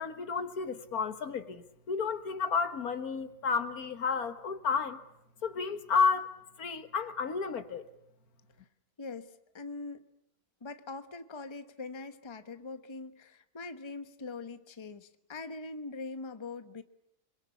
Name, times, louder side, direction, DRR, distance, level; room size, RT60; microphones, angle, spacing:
voice 1, 0.0-5.0 5.4-6.3 6.6-7.8, left 5 dB, 70° left, 1.9 m, -31 dB
voice 2, 9.0-9.3 9.5-10.1 10.6-16.8, left 3 dB, 20° left, 1.0 m, -42 dB
28.5 x 22.5 x 8.4 m
omnidirectional pair, 1.6 m